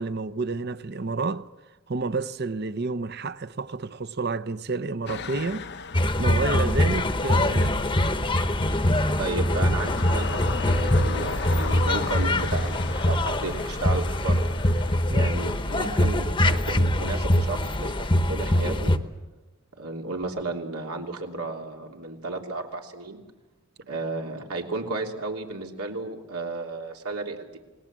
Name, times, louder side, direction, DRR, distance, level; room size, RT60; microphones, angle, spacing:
voice 1, 0.0-1.5 1.9-5.7 6.2-7.8 15.1-15.3, right 3 dB, 45° right, 0.7 m, -30 dB
sound 1, 5.1-16.1, left 4 dB, 50° left, 0.7 m, -37 dB
sound 2, 5.9-19.0, left 1 dB, 20° left, 0.9 m, -23 dB
voice 2, 9.2-14.5 15.1-18.9 19.8-23.2 23.9-27.6, right 2 dB, 90° right, 3.1 m, -33 dB
28.5 x 20.0 x 7.5 m
head